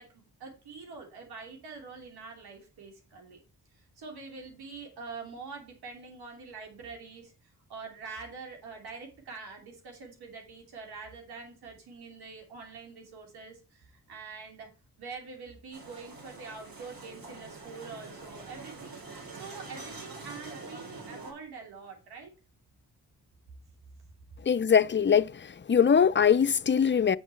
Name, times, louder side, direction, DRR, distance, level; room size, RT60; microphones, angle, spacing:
voice 1, 0.0-3.4 4.0-7.3 7.7-14.7 15.0-18.9 19.3-22.3, right 4 dB, 90° right, 2.9 m, -45 dB
sound 1, 15.7-21.3, right 3 dB, 65° right, 4.2 m, -45 dB
voice 2, 24.5-25.3 25.7-27.2, left 7 dB, 30° left, 0.6 m, -22 dB
7.2 x 7.2 x 4.5 m
supercardioid pair, 45°, 37 cm